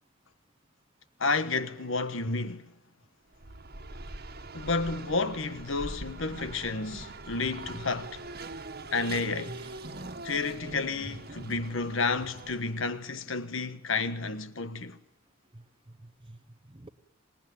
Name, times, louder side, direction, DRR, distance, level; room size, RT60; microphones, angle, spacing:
voice 1, 1.2-2.7 4.5-8.2 8.9-9.6 10.2-15.0, left 3 dB, 60° left, 1.3 m, -31 dB
Race car auto racing, 3.3-13.0, right 2 dB, 45° right, 1.7 m, -43 dB
sound 1, 3.4-8.7, right 3 dB, 90° right, 1.6 m, -59 dB
voice 2, 9.5-10.1 11.0-11.2 15.5-16.9, right 1 dB, 25° right, 0.9 m, -47 dB
26.0 x 19.5 x 9.4 m
head